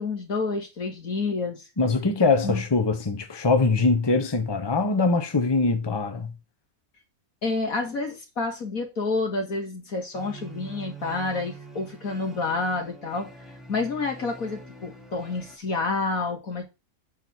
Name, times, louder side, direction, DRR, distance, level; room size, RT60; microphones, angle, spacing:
voice 1, 0.0-1.7 2.4-2.6 7.4-13.3 13.7-16.6, left 3 dB, 85° left, 2.9 m, -29 dB
voice 2, 1.8-6.3, left 3 dB, 20° left, 1.1 m, -22 dB
sound 1, 10.1-15.6, right 3 dB, ahead, 1.6 m, -44 dB
8.4 x 4.6 x 6.0 m
omnidirectional pair, 1.5 m